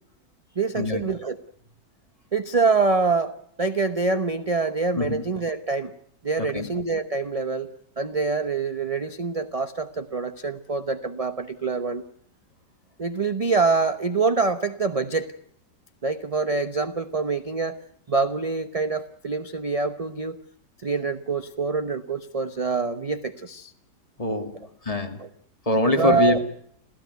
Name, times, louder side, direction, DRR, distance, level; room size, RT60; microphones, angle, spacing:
voice 1, 0.6-1.4 2.3-5.9 6.2-7.7 8.0-12.0 13.0-15.3 16.0-17.8 18.1-20.4 20.8-23.7 25.2-25.3 26.0-26.4, right 4 dB, 30° right, 10 dB, 0.8 m, -25 dB
voice 2, 6.4-6.7 24.2-25.2 25.7-26.4, left 2 dB, 20° left, 6 dB, 2.2 m, -24 dB
27.0 x 15.5 x 9.3 m, 0.70 s
omnidirectional pair, 1.8 m